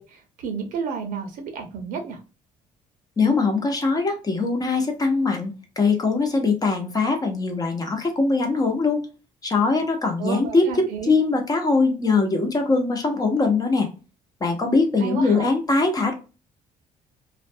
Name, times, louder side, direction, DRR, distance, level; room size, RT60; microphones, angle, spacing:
voice 1, 0.0-2.2 10.2-11.1 15.0-15.5, right 5 dB, 80° right, 4 dB, 0.9 m, -31 dB
voice 2, 3.2-9.0 9.4-13.9 14.4-16.1, left 3 dB, 25° left, 3 dB, 0.8 m, -22 dB
2.5 x 2.2 x 2.6 m, 0.32 s
cardioid pair, 110°, 14 cm